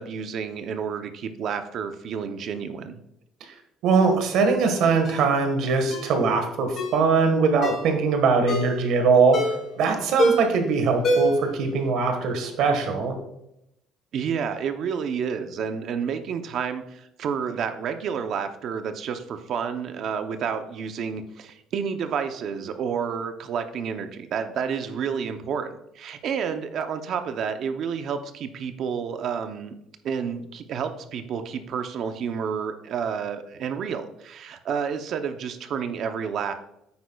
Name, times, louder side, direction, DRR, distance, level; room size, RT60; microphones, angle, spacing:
voice 1, 0.0-3.0 14.1-29.7 30.0-36.5, right 7 dB, 45° right, 8 dB, 0.7 m, -30 dB
voice 2, 3.8-9.4 9.8-13.2, right 4 dB, 60° right, 6 dB, 1.5 m, -21 dB
Ringtone, 5.0-5.3 5.9-6.1 6.8-7.0 7.6-7.9 8.5-8.8 9.3-9.7 10.2-10.6 11.0-11.5 11.8-11.9, equal, 35° left, 2.4 m, -25 dB
9.4 x 8.4 x 2.3 m, 0.83 s
cardioid pair, 170°, 0 cm